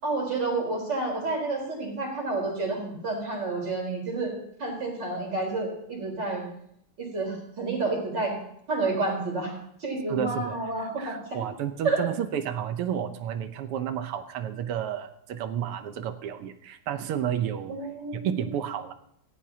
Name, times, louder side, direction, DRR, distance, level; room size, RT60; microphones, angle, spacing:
voice 1, 0.0-6.5 7.0-8.4 8.7-9.5 9.8-11.1 11.8-12.0 17.7-18.3, right 3 dB, 50° right, 0 dB, 4.9 m, -29 dB
voice 2, 10.1-10.6 11.0-17.7 18.1-18.9, right 9 dB, 85° right, 9 dB, 1.8 m, -31 dB
17.5 x 15.5 x 2.8 m, 0.72 s
omnidirectional pair, 2.4 m